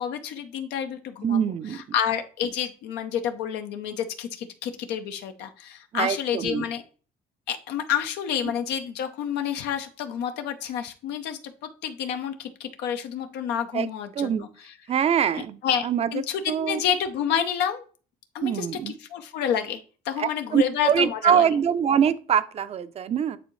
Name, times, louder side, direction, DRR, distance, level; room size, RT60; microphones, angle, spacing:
voice 1, 0.0-1.4 1.7-6.8 7.5-14.7 15.6-17.8 18.3-18.7 19.0-21.5, left 8 dB, 85° left, 0.7 m, -29 dB
voice 2, 1.2-1.8 5.9-6.6 13.7-14.5 14.9-16.8 18.4-18.9 20.2-23.4, right 8 dB, 40° right, 0.5 m, -24 dB
9.0 x 3.6 x 3.1 m
cardioid pair, 110°, 17 cm